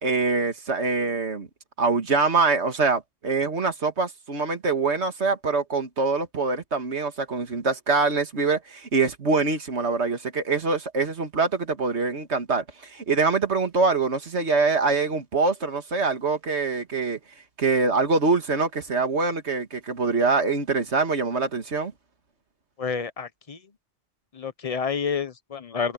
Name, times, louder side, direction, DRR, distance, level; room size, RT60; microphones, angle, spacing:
voice 1, 0.0-1.5 1.8-17.2 17.6-21.9, right 4 dB, 70° right, 2.1 m, -24 dB
voice 2, 22.8-23.6 24.3-25.9, left 6 dB, 35° left, 0.9 m, -29 dB
omnidirectional pair, 1.2 m